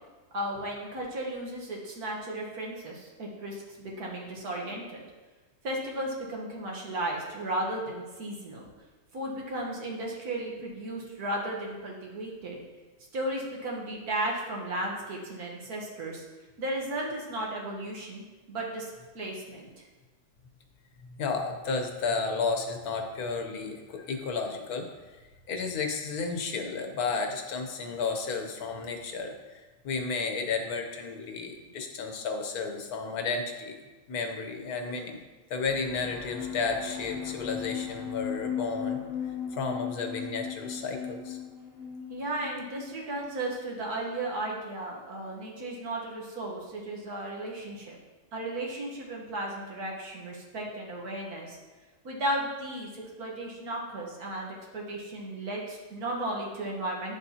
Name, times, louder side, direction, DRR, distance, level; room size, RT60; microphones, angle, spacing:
voice 1, 0.3-5.1 5.6-8.7 9.1-12.6 13.1-16.2 16.6-18.2 18.5-19.9 42.1-48.0 48.3-51.6 52.0-57.2, right 1 dB, 75° right, -2 dB, 1.7 m, -35 dB
voice 2, 21.2-24.9 25.5-33.8 34.1-35.2 35.5-39.0 39.5-41.4, left 4 dB, 75° left, 4 dB, 1.4 m, -32 dB
sound 1, 35.6-43.2, left 8 dB, ahead, 2.3 m, -37 dB
9.7 x 6.8 x 2.8 m, 1.3 s
omnidirectional pair, 1.6 m